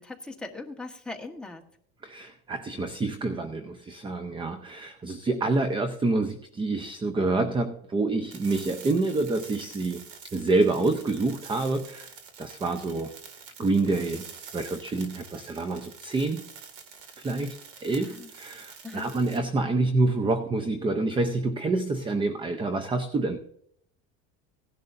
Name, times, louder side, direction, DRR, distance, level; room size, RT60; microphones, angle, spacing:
voice 1, 0.0-1.7 18.0-18.3 18.8-19.1, left 3 dB, 5° left, 0 dB, 1.3 m, -40 dB
voice 2, 2.0-10.0 10.3-12.1 12.4-13.1 13.6-14.3 14.5-16.4 17.2-17.6 17.8-23.4, right 2 dB, 15° right, 9 dB, 0.6 m, -27 dB
sound 1, 8.3-19.4, right 6 dB, 60° right, 2.4 m, -47 dB
17.5 x 11.0 x 2.6 m, 0.70 s
supercardioid pair, 130°, 34 cm